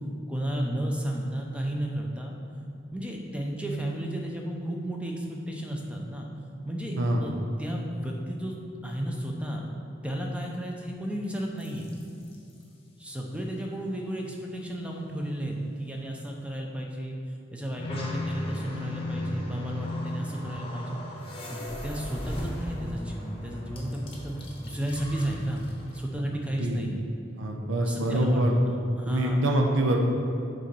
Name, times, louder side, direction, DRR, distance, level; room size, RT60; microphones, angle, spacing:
voice 1, 0.3-2.4 2.9-6.3 6.6-8.6 8.8-9.6 10.0-11.9 13.0-17.2 17.5-21.0 21.5-25.6 25.9-27.1 27.8-29.5, right 1 dB, 5° right, 0 dB, 0.6 m, -33 dB
sound 1, 11.6-12.5 17.8-26.0, left 1 dB, 25° left, 0.9 m, -36 dB
voice 2, 27.4-28.5 29.1-30.0, right 1 dB, 70° right, 1 dB, 0.7 m, -25 dB
7.1 x 3.9 x 5.3 m, 2.6 s
head